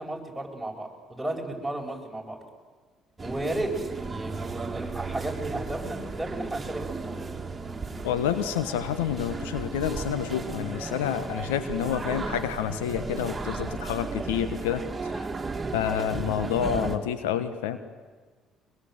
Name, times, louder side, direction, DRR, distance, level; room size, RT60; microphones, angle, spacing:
voice 1, 0.0-2.4 3.2-7.4 14.8-15.3 16.0-16.3, right 1 dB, 5° right, 0 dB, 7.1 m, -34 dB
sound 1, 3.2-17.0, right 3 dB, 25° right, 2.4 m, -35 dB
voice 2, 8.0-14.8 15.7-17.8, left 9 dB, 85° left, 11 dB, 1.3 m, -28 dB
24.5 x 22.0 x 8.0 m, 1.4 s
hypercardioid pair, 60°, 0 cm